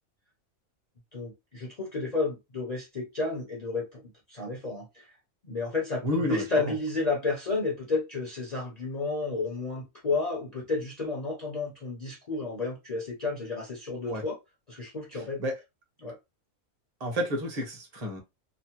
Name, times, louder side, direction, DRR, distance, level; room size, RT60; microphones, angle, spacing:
voice 1, 1.1-4.0 4.3-5.1 5.4-14.4 14.7-15.4 16.0-16.2, left 3 dB, 40° left, 0.7 m, -31 dB
voice 2, 6.0-6.7 14.1-14.2 15.4-15.6 17.0-18.2, equal, 30° right, 1.0 m, -31 dB
3.0 x 2.1 x 2.9 m
omnidirectional pair, 1.4 m